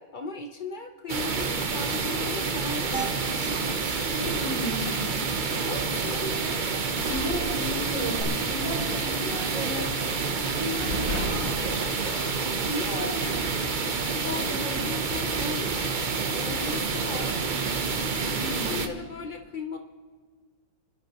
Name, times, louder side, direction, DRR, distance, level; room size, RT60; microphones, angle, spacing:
voice 1, 0.0-3.4 5.5-6.3 12.7-13.2 14.2-15.7 16.3-17.4 18.7-19.8, left 3 dB, 85° left, 4 dB, 0.4 m, -36 dB
sound 1, 1.1-18.9, right 4 dB, 75° right, 0.4 m, -28 dB
sound 2, 2.9-3.5 3.8-3.9 4.2-4.4 4.7-4.8 8.2-8.3, right 4 dB, 5° right, 1.4 m, -35 dB
voice 2, 4.1-5.2 6.2-6.3 7.1-9.9 10.4-12.2 12.8-13.2 14.3-14.8 18.2-18.9, equal, 20° right, -5 dB, 5.1 m, -34 dB
sound 3, 7.0-8.3 8.6-8.9 9.3-10.0 10.5-10.6 10.8-12.7, equal, 40° right, 5.5 m, -35 dB
27.5 x 11.5 x 2.9 m, 1.5 s
omnidirectional pair, 2.0 m